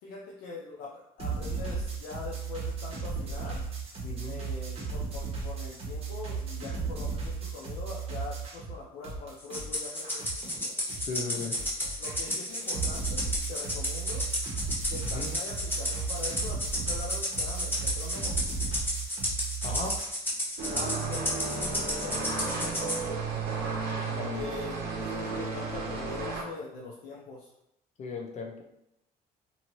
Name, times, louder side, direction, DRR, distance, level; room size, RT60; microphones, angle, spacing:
voice 1, 0.0-3.6 4.3-10.3 12.0-14.3 14.9-18.4 20.7-23.2 24.1-27.5, left 4 dB, 90° left, -3 dB, 0.5 m, -43 dB
sound 1, 1.2-8.8 9.0-20.1, right 4 dB, 40° right, 1.0 m, -35 dB
voice 2, 4.0-4.4 11.0-11.6 15.0-15.3 19.6-20.0 24.2-24.5 28.0-28.6, left 4 dB, 45° left, 2 dB, 0.6 m, -36 dB
Rattle (instrument), 9.5-23.0, left 1 dB, 10° left, 0.8 m, -32 dB
sound 2, 20.6-26.4, right 4 dB, 70° right, 0.7 m, -33 dB
2.7 x 2.6 x 3.0 m, 0.83 s
cardioid pair, 105°, 16 cm